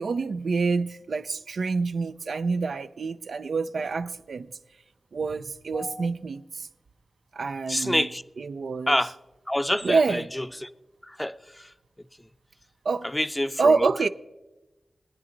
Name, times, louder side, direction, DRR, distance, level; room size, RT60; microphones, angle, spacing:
voice 1, 0.0-4.5 5.1-6.7 7.3-8.1 8.4-9.0 9.8-10.3 12.8-13.1 13.6-14.1, right 4 dB, 85° right, 0.4 m, -27 dB
voice 2, 5.7-6.1 7.7-8.2 8.9-9.1 9.5-10.7 11.0-11.7 13.0-13.9, left 1 dB, 10° left, 0.5 m, -27 dB
19.5 x 9.7 x 3.9 m
wide cardioid pair, 75°, 0 cm